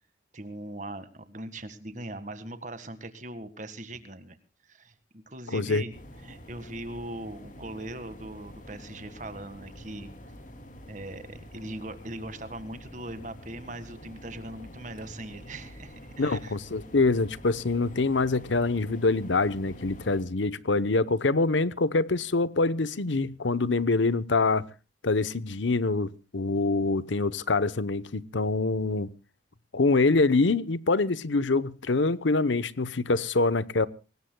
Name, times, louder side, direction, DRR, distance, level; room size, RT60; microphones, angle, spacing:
voice 1, 0.3-4.4 4.6-5.9 6.2-10.1 10.9-16.6, right 1 dB, 40° right, 1.8 m, -40 dB
voice 2, 5.5-5.8 16.2-24.6 25.0-29.1 29.7-33.9, left 3 dB, 80° left, 0.9 m, -25 dB
sound 1, 5.9-20.2, equal, 40° left, 2.8 m, -47 dB
25.0 x 19.5 x 2.3 m
head